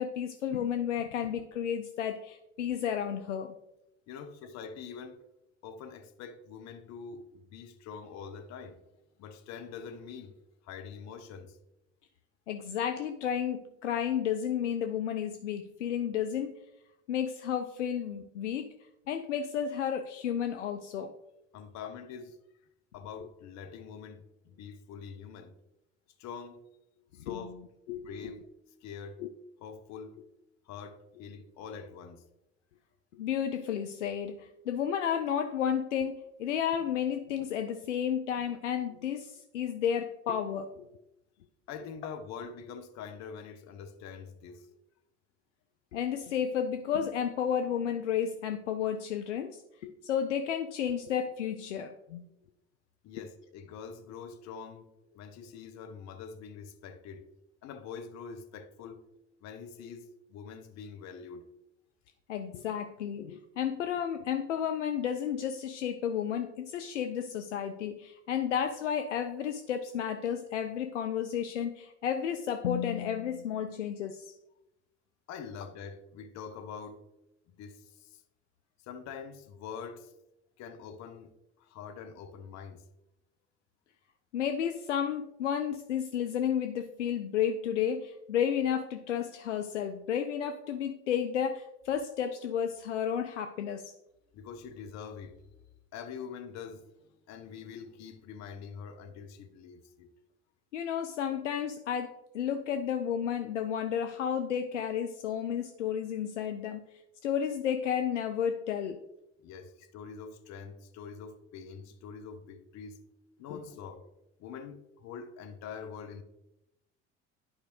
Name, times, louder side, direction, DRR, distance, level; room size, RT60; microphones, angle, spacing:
voice 1, 0.0-3.5 12.5-16.6 17.1-18.7 19.1-21.1 27.2-27.4 27.9-28.3 29.2-29.3 33.2-40.8 45.9-52.2 62.3-74.3 84.3-93.9 100.7-106.8 107.2-109.0 113.5-113.6, left 8 dB, 80° left, 0.5 m, -32 dB
voice 2, 4.1-5.2 5.6-8.8 9.2-10.4 10.6-11.6 21.5-22.4 22.9-25.5 26.2-26.6 27.1-27.6 27.9-28.4 28.8-29.2 29.6-30.2 30.6-32.2 41.7-44.8 52.3-52.4 53.0-57.3 57.6-59.1 59.4-61.5 75.3-77.0 77.5-78.2 78.8-80.1 80.6-82.9 94.3-95.4 95.7-100.1 109.4-113.0 113.4-114.1 114.4-116.2, left 6 dB, 50° left, 0.9 m, -45 dB
11.0 x 4.9 x 3.1 m
figure-of-eight pair, 60°, 35 cm